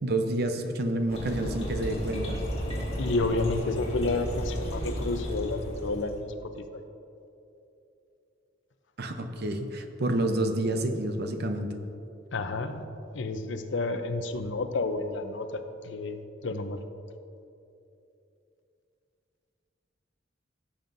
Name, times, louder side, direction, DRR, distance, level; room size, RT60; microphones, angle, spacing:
voice 1, 0.0-2.4 9.0-11.7, right 1 dB, 55° right, 6 dB, 0.7 m, -29 dB
sound 1, 1.1-6.2, equal, 30° left, 1.9 m, -33 dB
voice 2, 3.0-6.3 12.3-12.8 13.1-16.2 16.4-16.8, left 3 dB, 70° left, 8 dB, 0.6 m, -30 dB
16.0 x 7.2 x 2.6 m, 2.7 s
head